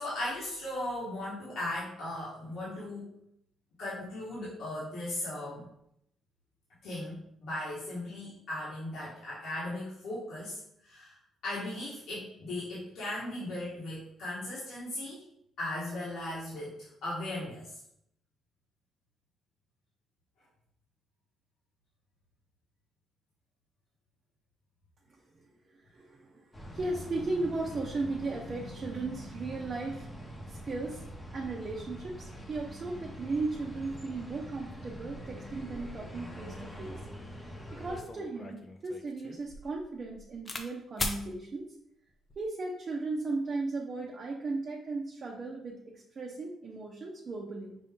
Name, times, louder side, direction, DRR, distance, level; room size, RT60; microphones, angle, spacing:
voice 1, 0.0-3.1 3.8-5.6 6.8-15.2 15.6-17.8, left 1 dB, 75° left, -9 dB, 1.5 m, -37 dB
voice 2, 25.9-30.1 30.5-31.0 31.3-37.0 37.4-41.7 42.4-47.8, right 3 dB, 45° right, -1 dB, 0.7 m, -36 dB
sound 1, 26.5-38.0, equal, 15° left, 1.0 m, -44 dB
sound 2, 37.3-37.4 37.8-40.7 41.0-41.2 42.1-42.5, left 2 dB, 35° left, 0.6 m, -39 dB
5.3 x 2.7 x 3.6 m, 0.74 s
cardioid pair, 90°, 0 cm